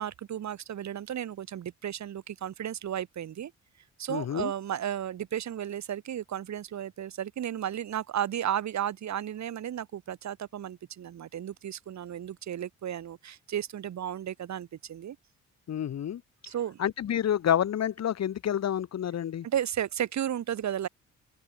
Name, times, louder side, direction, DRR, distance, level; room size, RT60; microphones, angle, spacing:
voice 1, 0.0-3.5 4.0-15.2 16.4-16.8 19.4-20.9, right 10 dB, 65° right, 5.3 m, -34 dB
voice 2, 4.1-4.5 15.7-16.2 16.8-19.5, left 10 dB, 60° left, 2.5 m, -28 dB
open air
cardioid pair, 90°, 30 cm